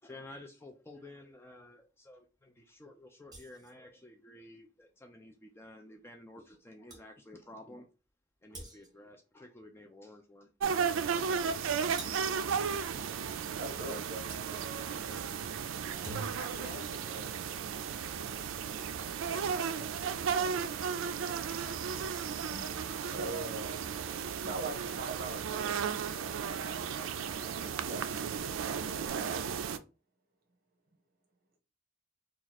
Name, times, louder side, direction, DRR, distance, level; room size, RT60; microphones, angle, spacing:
voice 1, 0.0-7.9 8.4-10.5, left 1 dB, 10° left, 0.4 m, -52 dB
sound 1, 3.3-3.8 6.5-6.6 6.9-7.1 8.5-9.1 11.9-12.4 14.3-14.5 15.8-16.6, right 1 dB, 20° right, 1.1 m, -46 dB
sound 2, 10.6-29.8, right 6 dB, 70° right, 0.4 m, -34 dB
voice 2, 13.6-14.4 16.8-17.3 19.3-19.9 20.4-20.5 22.5-23.7 24.4-28.1 29.1-29.4, right 2 dB, 50° right, 0.9 m, -43 dB
voice 3, 16.3-18.1, left 4 dB, 55° left, 0.6 m, -52 dB
3.0 x 2.4 x 4.0 m
head